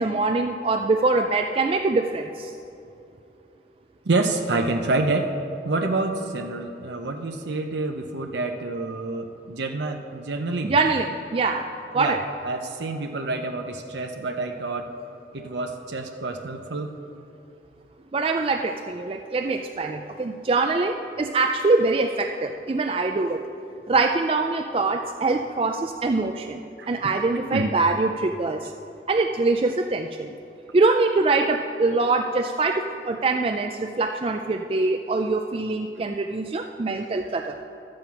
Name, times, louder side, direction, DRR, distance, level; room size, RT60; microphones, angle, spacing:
voice 1, 0.0-2.5 10.6-11.6 11.9-12.2 18.1-23.4 23.9-28.7 29.1-30.3 30.7-37.6, right 3 dB, 30° right, 5 dB, 0.3 m, -24 dB
voice 2, 4.1-5.3 5.6-10.7 11.9-12.2 12.4-14.9 15.3-16.9 26.8-26.9 27.5-27.7, right 2 dB, 85° right, 3 dB, 0.7 m, -27 dB
12.5 x 7.7 x 5.8 m, 2.7 s
head